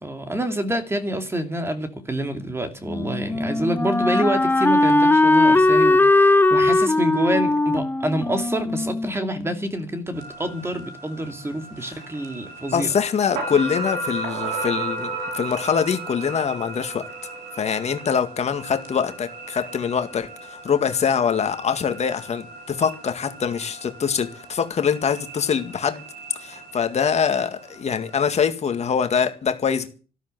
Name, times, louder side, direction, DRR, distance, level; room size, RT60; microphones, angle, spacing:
voice 1, 0.0-12.9, right 1 dB, 15° right, 2.6 m, -27 dB
Wind instrument woodwind instrument, 2.9-9.7, left 2 dB, 10° left, 0.8 m, -19 dB
sound 1, 10.1-28.1, right 2 dB, 85° right, 5.0 m, -35 dB
voice 2, 12.7-17.0 17.6-26.0 26.4-29.9, left 7 dB, 40° left, 2.0 m, -24 dB
13.5 x 12.5 x 7.8 m
cardioid pair, 110°, 17 cm